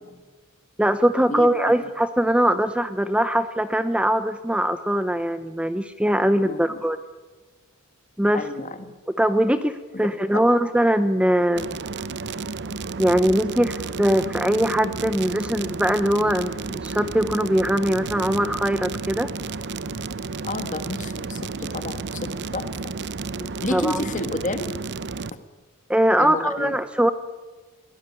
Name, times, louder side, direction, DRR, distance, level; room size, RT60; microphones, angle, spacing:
voice 1, 0.8-7.0 8.2-8.5 9.2-11.8 13.0-19.3 23.4-24.1 25.9-27.1, equal, 5° right, 11 dB, 0.6 m, -21 dB
voice 2, 1.3-1.9 6.4-6.8 8.3-8.9 9.9-10.1 10.3-10.4 20.4-22.9 23.6-24.7 26.2-26.8, left 2 dB, 35° left, 9 dB, 1.8 m, -31 dB
sound 1, 11.6-25.3, right 4 dB, 55° right, 0.8 m, -32 dB
23.0 x 18.0 x 9.7 m, 1.3 s
head